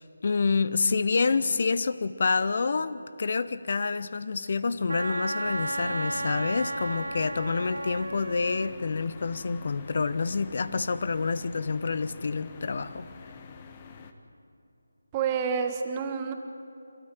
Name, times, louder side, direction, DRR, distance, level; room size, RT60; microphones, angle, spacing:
voice 1, 0.0-13.1, left 4 dB, 45° left, 15 dB, 0.8 m, -28 dB
Wind instrument woodwind instrument, 4.9-8.7, right 2 dB, 70° right, 0.5 m, -33 dB
sound 1, 5.4-14.1, left 5 dB, 25° left, 1.3 m, -47 dB
voice 2, 15.1-16.3, right 6 dB, 20° right, 5 dB, 1.5 m, -28 dB
28.5 x 13.0 x 9.4 m, 2.7 s
figure-of-eight pair, 155°, 0 cm